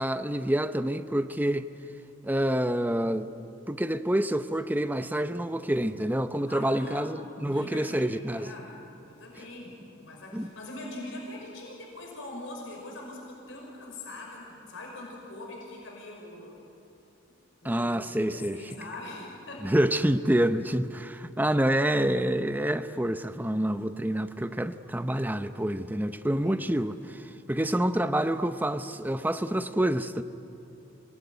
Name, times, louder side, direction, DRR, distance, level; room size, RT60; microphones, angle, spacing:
voice 1, 0.0-1.7 2.2-8.5 10.3-10.5 17.6-18.6 19.6-30.2, right 1 dB, 10° right, 0.7 m, -27 dB
voice 2, 6.5-8.8 9.1-16.6 17.6-17.9 18.2-19.7 26.2-26.9, left 2 dB, 70° left, 5.5 m, -42 dB
26.5 x 19.0 x 9.5 m
head